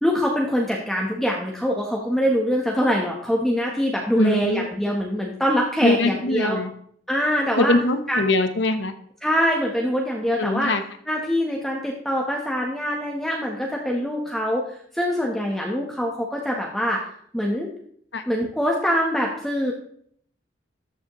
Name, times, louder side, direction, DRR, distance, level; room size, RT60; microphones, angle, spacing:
voice 1, 0.0-6.6 7.1-7.7 8.1-8.2 9.2-10.7 11.1-14.6 14.9-17.1 17.3-17.7 18.3-19.7, equal, ahead, -1 dB, 1.0 m, -24 dB
voice 2, 4.2-4.7 5.8-6.7 7.5-8.9 10.4-10.8 18.1-18.2, left 2 dB, 65° left, 9 dB, 0.9 m, -22 dB
13.0 x 7.1 x 3.0 m, 0.63 s
head